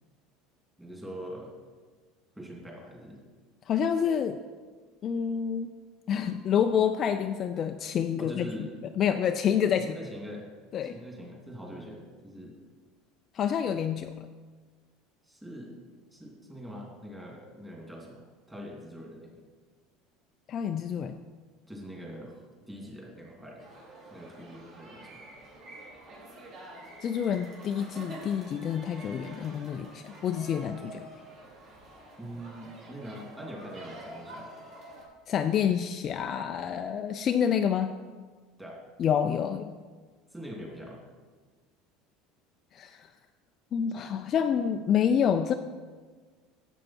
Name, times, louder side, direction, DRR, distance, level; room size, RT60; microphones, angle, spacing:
voice 1, 0.8-1.5 2.4-3.2 8.2-8.7 9.7-10.5 10.8-12.6 15.2-15.8 16.1-19.4 21.7-23.6 24.1-25.2 32.2-34.5 38.6-38.8 40.3-41.0, equal, 10° right, -2 dB, 2.6 m, -43 dB
voice 2, 3.7-4.4 5.0-5.7 6.1-8.5 9.0-10.0 10.7-11.0 13.3-14.3 20.5-21.2 27.0-31.0 35.3-37.9 39.0-39.7 42.7-43.1 43.7-45.5, left 8 dB, 35° left, 7 dB, 0.4 m, -28 dB
sound 1, 23.6-35.0, right 1 dB, 40° right, 3.5 m, -47 dB
12.0 x 8.0 x 4.5 m, 1.4 s
cardioid pair, 155°, 0 cm